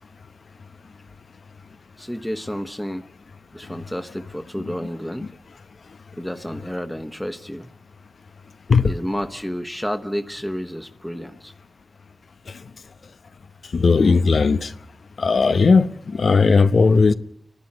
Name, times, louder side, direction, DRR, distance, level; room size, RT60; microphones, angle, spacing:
voice 1, 2.0-3.1 3.5-5.3 6.2-7.7 8.8-11.5, equal, 5° left, 1.3 m, -30 dB
voice 2, 13.7-14.7 15.2-17.1, left 4 dB, 85° left, 0.9 m, -16 dB
29.5 x 12.0 x 10.0 m
cardioid pair, 50°, 0 cm